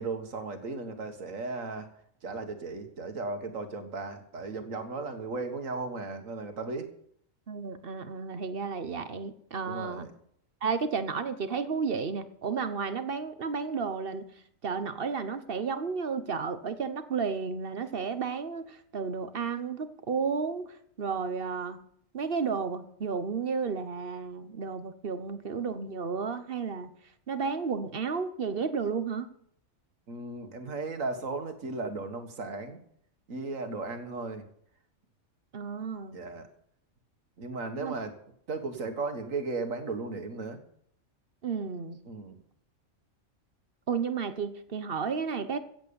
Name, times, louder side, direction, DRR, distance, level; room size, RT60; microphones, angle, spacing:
voice 1, 0.0-1.9 2.2-6.9 9.7-10.1 30.1-32.8 33.3-34.5 36.1-36.5 37.4-38.2 38.5-40.6 42.1-42.4, right 3 dB, 75° right, 7 dB, 2.0 m, -36 dB
voice 2, 7.5-10.1 10.6-14.3 14.6-21.8 22.1-26.9 27.3-29.3 35.5-36.2 37.8-37.9 41.4-42.0 43.9-45.6, right 5 dB, 45° right, 11 dB, 1.1 m, -32 dB
15.5 x 8.3 x 7.0 m, 0.67 s
omnidirectional pair, 1.4 m